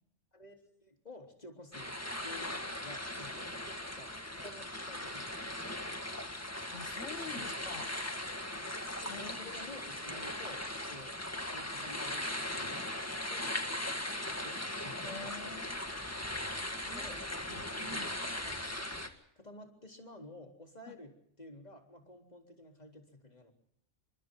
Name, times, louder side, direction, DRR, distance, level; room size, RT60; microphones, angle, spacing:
voice 1, 0.3-5.6 7.3-7.6 8.5-8.7 9.2-11.2 11.5-12.9 13.3-15.5 16.9-17.3 17.9-18.0 18.4-18.6 19.4-23.5, left 2 dB, 35° left, 3 dB, 3.9 m, -52 dB
sound 1, 1.7-19.1, left 1 dB, 10° left, 1.9 m, -39 dB
voice 2, 6.4-7.9 9.0-9.4 15.0-15.8 16.8-17.1 17.5-18.1 20.9-21.0, left 4 dB, 85° left, 9 dB, 1.7 m, -47 dB
29.5 x 25.5 x 3.9 m, 0.71 s
omnidirectional pair, 1.3 m